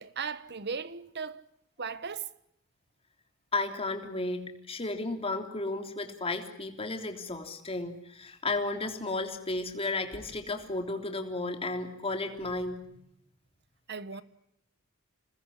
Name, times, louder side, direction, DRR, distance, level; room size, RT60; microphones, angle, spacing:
voice 1, 0.0-1.4 1.8-2.3 13.9-14.2, right 5 dB, 55° right, 1.3 m, -37 dB
voice 2, 3.5-12.9, left 2 dB, 30° left, 3.3 m, -33 dB
28.0 x 20.5 x 9.9 m
head